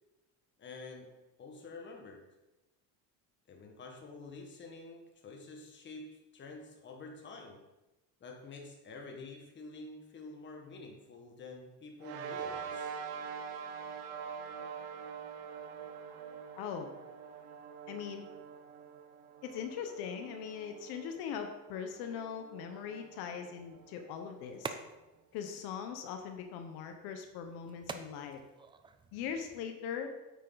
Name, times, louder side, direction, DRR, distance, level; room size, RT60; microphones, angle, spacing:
voice 1, 0.6-2.2 3.5-7.6 8.2-13.0, left 3 dB, 30° left, 2 dB, 1.6 m, -48 dB
sound 1, 12.0-24.7, right 6 dB, 75° right, 1.4 m, -45 dB
voice 2, 16.6-16.9 17.9-18.3 19.4-24.7 25.3-28.4 29.1-30.1, left 7 dB, 80° left, 6 dB, 1.1 m, -40 dB
sound 2, 23.6-29.6, right 4 dB, 15° right, 0.3 m, -49 dB
9.4 x 8.2 x 4.0 m, 1.0 s
cardioid pair, 160°, 37 cm